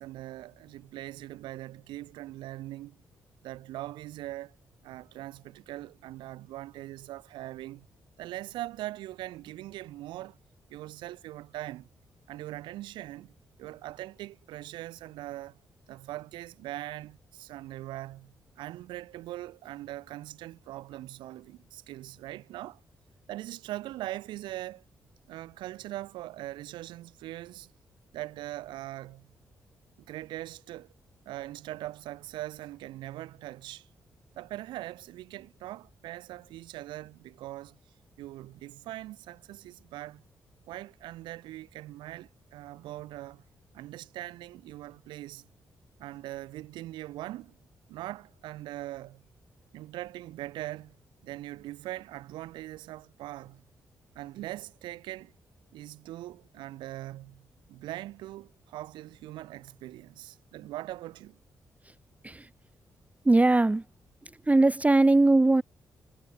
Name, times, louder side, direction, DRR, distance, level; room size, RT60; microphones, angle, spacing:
voice 1, 0.0-3.0 3.4-4.6 4.8-7.9 8.2-10.4 10.7-11.9 12.3-13.3 13.6-15.6 15.9-22.8 23.3-24.8 25.3-27.7 28.1-29.3 30.1-30.9 31.3-33.9 34.4-37.8 38.2-40.2 40.7-43.4 43.7-45.5 46.0-47.6 47.9-49.2 49.7-51.0 51.2-53.6 54.2-55.3 55.7-61.4, right 15 dB, 85° right, 1.8 m, -41 dB
voice 2, 63.3-63.8 64.5-65.6, right 2 dB, 20° right, 0.7 m, -20 dB
supercardioid pair, 45°, 8 cm